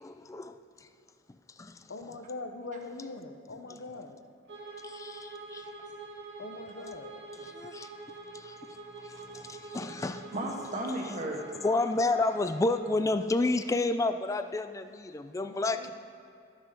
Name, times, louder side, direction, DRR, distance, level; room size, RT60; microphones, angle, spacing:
voice 1, 0.0-0.6 1.6-1.9 4.8-5.6 7.4-7.9 8.3-8.5 9.0-10.3 11.6-15.9, left 2 dB, 15° left, 9 dB, 0.3 m, -30 dB
voice 2, 1.9-4.2 6.4-7.2 15.4-15.9, left 3 dB, 90° left, 7 dB, 0.8 m, -42 dB
Bowed string instrument, 4.4-13.0, right 3 dB, 70° right, 1.8 m, -46 dB
voice 3, 9.1-9.4 10.0-11.6, right 1 dB, 45° right, 0 dB, 1.5 m, -36 dB
13.0 x 6.3 x 5.3 m, 2.5 s
head